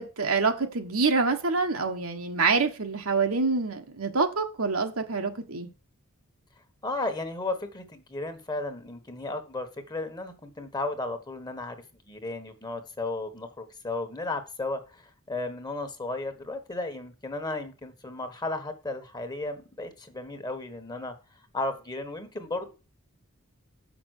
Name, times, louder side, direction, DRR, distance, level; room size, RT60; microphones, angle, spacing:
voice 1, 0.0-5.7, right 4 dB, 70° right, 1.4 m, -26 dB
voice 2, 6.8-21.1 21.5-22.7, left 2 dB, 20° left, 1.3 m, -34 dB
7.2 x 6.0 x 6.5 m
head